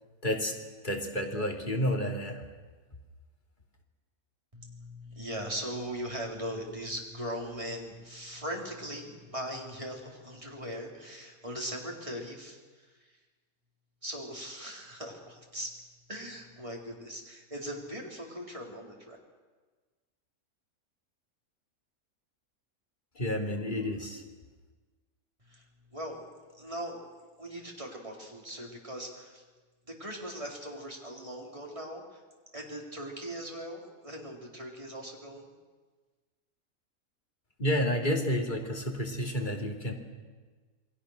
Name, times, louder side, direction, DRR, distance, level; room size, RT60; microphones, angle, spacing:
voice 1, 0.2-0.6 0.8-2.4 23.1-24.2 37.6-39.9, equal, 35° left, 1 dB, 3.0 m, -30 dB
voice 2, 4.5-12.6 14.0-15.7 16.1-19.2 25.5-25.6 25.9-26.3 26.5-27.1 27.4-29.4 29.9-32.2 32.5-35.5, equal, 20° right, -1 dB, 4.1 m, -40 dB
28.5 x 21.5 x 6.6 m, 1.4 s
omnidirectional pair, 1.5 m